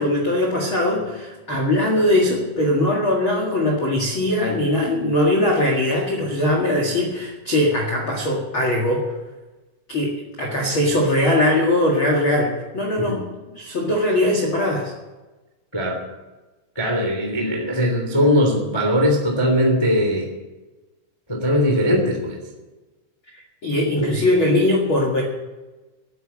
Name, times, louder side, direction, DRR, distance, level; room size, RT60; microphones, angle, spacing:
voice 1, 0.0-9.0 9.9-10.1 10.4-13.2 13.5-14.9 23.6-25.2, left 1 dB, 80° left, -1 dB, 1.1 m, -20 dB
voice 2, 16.7-20.3 21.3-22.4 24.0-24.1, equal, 25° left, 1 dB, 0.5 m, -20 dB
14.0 x 9.3 x 8.7 m, 1.1 s
omnidirectional pair, 5.8 m